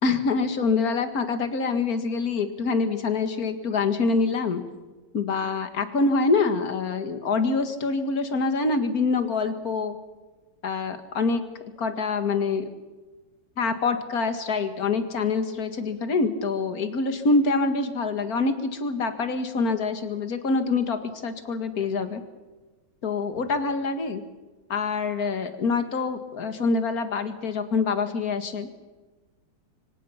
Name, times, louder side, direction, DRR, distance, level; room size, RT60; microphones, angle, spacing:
voice 1, 0.0-4.6 5.1-10.0 10.6-11.4 11.8-12.6 13.6-22.2 23.0-24.2 24.7-28.8, left 4 dB, 50° left, 8 dB, 2.3 m, -25 dB
26.0 x 25.5 x 5.8 m, 1.2 s
omnidirectional pair, 2.1 m